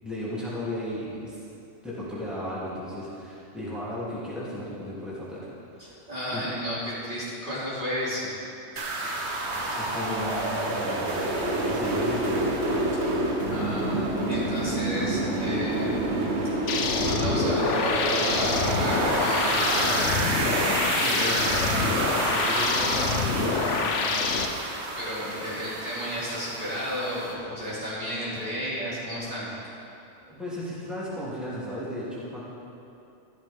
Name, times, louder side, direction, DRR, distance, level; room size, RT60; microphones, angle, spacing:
voice 1, 0.0-1.4 1.8-5.5 5.7-6.0 6.3-6.5 9.5-11.2 11.5-12.5 19.5-24.4 30.2-32.4, left 1 dB, ahead, -10 dB, 3.0 m, -35 dB
voice 2, 5.8-8.3 12.9-13.1 13.4-15.9 16.4-16.5 17.0-19.5 25.0-29.5, equal, 40° right, -9 dB, 3.3 m, -32 dB
sound 1, 8.8-27.3, right 2 dB, 60° right, 1.5 m, -28 dB
sound 2, 16.7-24.5, left 5 dB, 70° left, 1.2 m, -27 dB
14.0 x 13.0 x 3.7 m, 2.7 s
omnidirectional pair, 1.3 m